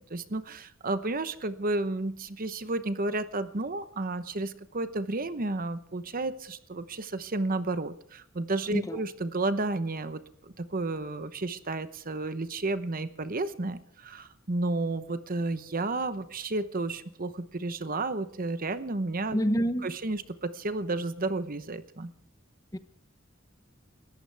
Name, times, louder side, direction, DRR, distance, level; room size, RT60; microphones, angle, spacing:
voice 1, 0.1-19.4 19.8-22.1, right 2 dB, 45° right, 12 dB, 0.9 m, -32 dB
voice 2, 19.3-19.9 22.7-22.8, equal, 15° left, 11 dB, 0.8 m, -27 dB
29.0 x 14.0 x 3.5 m, 0.64 s
head